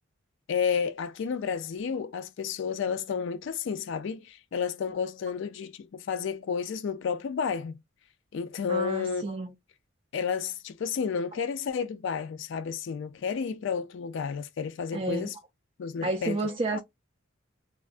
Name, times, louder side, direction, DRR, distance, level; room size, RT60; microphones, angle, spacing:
voice 1, 0.5-7.8 8.3-9.2 10.1-15.3 15.8-16.4 16.7-16.8, left 6 dB, 60° left, 0.3 m, -31 dB
voice 2, 8.7-9.5 14.9-15.3 16.0-16.8, right 2 dB, 25° right, 0.3 m, -31 dB
3.5 x 2.2 x 2.4 m
head